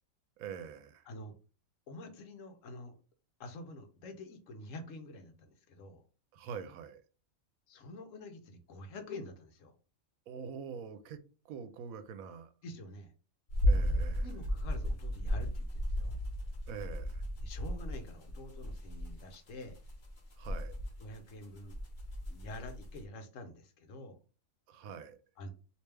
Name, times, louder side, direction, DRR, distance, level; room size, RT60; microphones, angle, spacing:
voice 1, 0.4-1.0 6.3-7.0 10.3-11.2 11.4-12.5 13.7-14.3 16.7-17.2 20.4-20.8 24.7-25.2, right 6 dB, 80° right, 1.0 m, -44 dB
voice 2, 1.9-3.0 3.4-6.0 7.7-9.7 12.6-13.1 14.2-16.2 17.4-19.8 21.0-21.8 22.3-24.2 25.4-25.5, left 2 dB, 70° left, 1.0 m, -47 dB
sound 1, 13.5-23.0, equal, 40° left, 0.9 m, -34 dB
3.3 x 2.8 x 3.2 m
omnidirectional pair, 1.4 m